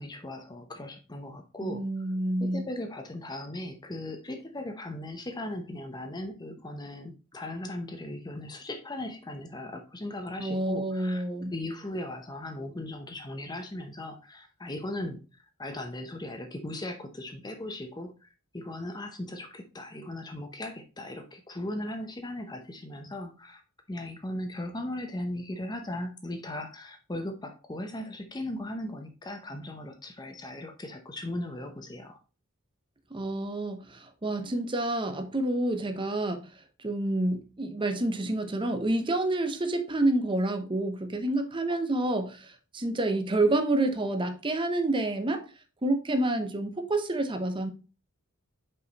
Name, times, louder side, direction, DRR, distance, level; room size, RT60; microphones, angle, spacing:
voice 1, 0.0-1.8 2.4-11.2 11.5-23.6 23.9-32.2, left 1 dB, 20° left, 0.7 m, -38 dB
voice 2, 1.6-2.7 10.4-11.5 33.1-36.5 36.8-45.4 45.8-47.7, right 2 dB, 25° right, 0.8 m, -28 dB
5.5 x 4.8 x 4.0 m
head